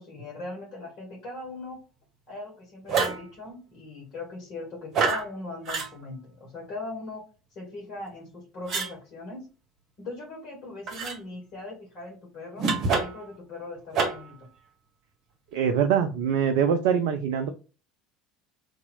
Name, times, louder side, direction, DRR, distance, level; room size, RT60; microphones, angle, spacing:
voice 1, 0.0-1.8 2.3-7.3 7.5-9.5 10.0-14.4, left 2 dB, 50° left, -2 dB, 1.5 m, -39 dB
sound 1, 2.9-3.3 4.9-5.3 5.7-5.9 8.7-8.9 10.9-11.2 12.6-13.3 13.9-14.3, right 4 dB, 45° right, 1.0 m, -26 dB
voice 2, 15.5-17.5, right 7 dB, 60° right, 7 dB, 0.3 m, -23 dB
2.9 x 2.6 x 4.0 m, 0.34 s
figure-of-eight pair, 65°, 0 cm